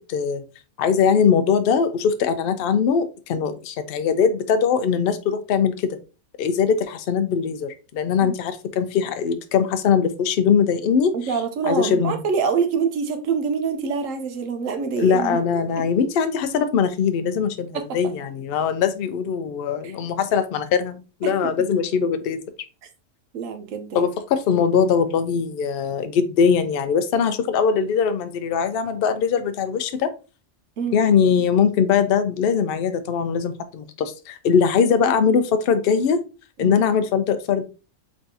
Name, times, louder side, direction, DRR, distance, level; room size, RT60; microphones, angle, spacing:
voice 1, 0.1-0.4 0.8-6.0 6.4-11.1 11.7-12.2 15.0-22.4 23.9-30.1 30.9-36.2 36.6-37.6, left 6 dB, 60° left, 0.6 m, -21 dB
voice 2, 11.1-15.4 15.8-15.9 17.7-18.1 19.8-20.0 21.2-21.5 23.3-24.1 30.8-31.0 36.6-36.8, right 5 dB, 80° right, 1.1 m, -26 dB
4.1 x 3.5 x 2.6 m
omnidirectional pair, 1.4 m